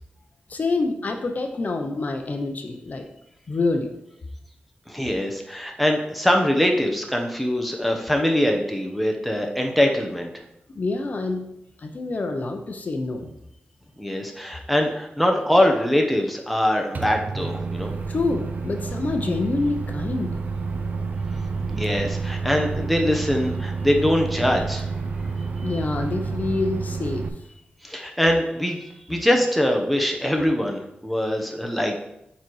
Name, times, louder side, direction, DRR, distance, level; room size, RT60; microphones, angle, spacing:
voice 1, 0.5-3.1 3.5-3.9 10.7-11.5 11.8-13.3 18.1-20.3 25.6-27.2, left 3 dB, 45° left, 4 dB, 0.7 m, -26 dB
voice 2, 4.9-10.4 14.0-17.9 21.7-24.9 27.8-32.0, left 1 dB, ahead, 2 dB, 0.9 m, -23 dB
Microwave oven, 16.9-27.3, right 4 dB, 50° right, 0.6 m, -29 dB
7.2 x 4.0 x 4.7 m, 0.81 s
wide cardioid pair, 125°, 4 cm